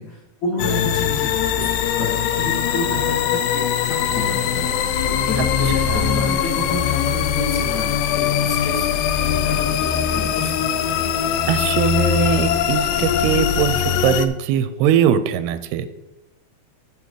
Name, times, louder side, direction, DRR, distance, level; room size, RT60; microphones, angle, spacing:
voice 1, 0.0-10.7, left 1 dB, 50° left, -4 dB, 2.8 m, -30 dB
sound 1, 0.6-14.3, left 9 dB, 85° left, 2.1 m, -21 dB
voice 2, 11.5-15.9, right 9 dB, 80° right, 11 dB, 2.3 m, -21 dB
8.1 x 7.0 x 4.8 m, 0.95 s
omnidirectional pair, 4.8 m